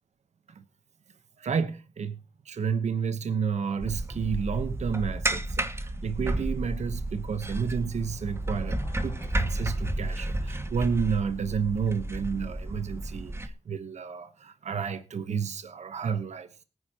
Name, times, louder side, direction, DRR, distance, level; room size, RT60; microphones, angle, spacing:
voice 1, 1.4-2.2 2.4-16.6, right 6 dB, 80° right, 1.0 m, -31 dB
sound 1, 3.8-13.5, right 1 dB, 20° right, 1.4 m, -32 dB
Car passing by / Engine, 6.4-12.8, left 3 dB, 40° left, 3.3 m, -56 dB
21.5 x 9.6 x 2.9 m
wide cardioid pair, 85°, 12 cm